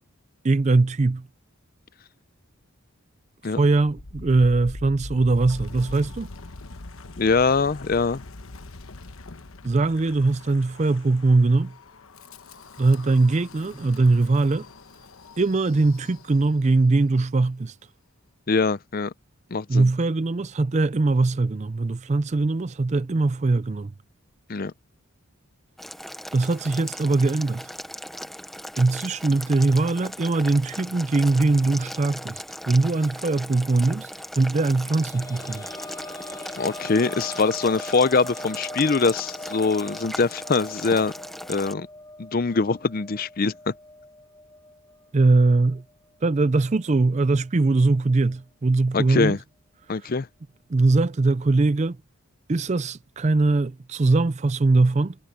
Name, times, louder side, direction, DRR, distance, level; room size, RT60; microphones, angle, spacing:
voice 1, 0.4-1.3 3.6-6.3 9.6-11.8 12.8-14.7 15.4-17.8 19.7-23.9 26.3-27.7 28.8-35.7 45.1-45.8 46.2-49.4 50.0-50.1 50.7-52.0 52.5-55.2, right 3 dB, 30° right, 0.4 m, -21 dB
Wind, 3.7-16.7, left 2 dB, 70° left, 1.1 m, -42 dB
voice 2, 7.2-8.2 18.5-19.1 19.5-19.9 24.5-24.7 36.6-41.1 41.5-41.9 42.2-43.7 48.9-49.4 49.9-50.3, left 4 dB, 40° left, 0.5 m, -23 dB
Boiling, 25.8-41.7, equal, ahead, 0.8 m, -38 dB
sound 1, 34.5-45.9 46.3-46.4 47.9-48.0, left 1 dB, 20° left, 3.8 m, -41 dB
head